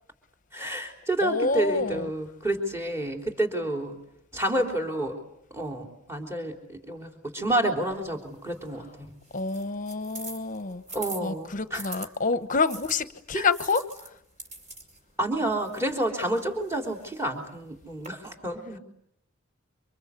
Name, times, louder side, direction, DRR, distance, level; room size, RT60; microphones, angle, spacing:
voice 1, 0.5-4.0 4.3-5.1 5.5-8.8 10.9-11.8 13.3-13.4 15.2-18.8, right 1 dB, 15° right, 3 dB, 3.6 m, -29 dB
voice 2, 1.2-2.1 9.3-10.8 11.2-13.8, left 4 dB, 40° left, 12 dB, 1.1 m, -27 dB
sound 1, 7.9-12.1 12.7-18.1, right 2 dB, 35° right, 5.1 m, -45 dB
28.0 x 25.5 x 8.4 m, 0.75 s
head